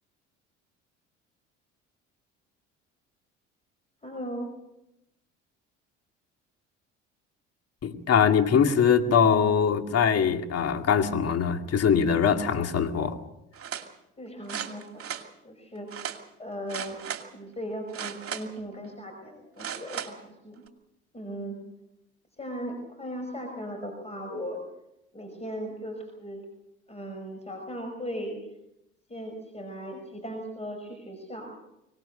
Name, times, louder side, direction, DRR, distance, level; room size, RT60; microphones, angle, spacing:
voice 1, 4.0-4.5 14.2-15.2 15.4-15.9 16.4-17.0 17.3-20.6 21.1-21.6 22.4-24.6 25.1-26.4 26.9-28.4 29.1-31.5, equal, 15° left, 4 dB, 5.8 m, -37 dB
voice 2, 7.8-13.2, left 7 dB, 45° left, 6 dB, 2.3 m, -22 dB
sound 1, 13.5-13.9 14.5-15.3 15.9-16.2 16.7-17.3 17.9-18.6 19.6-20.1 20.7-20.8, right 9 dB, 40° right, 2.5 m, -36 dB
24.5 x 19.0 x 6.6 m, 0.87 s
hypercardioid pair, 60°, 36 cm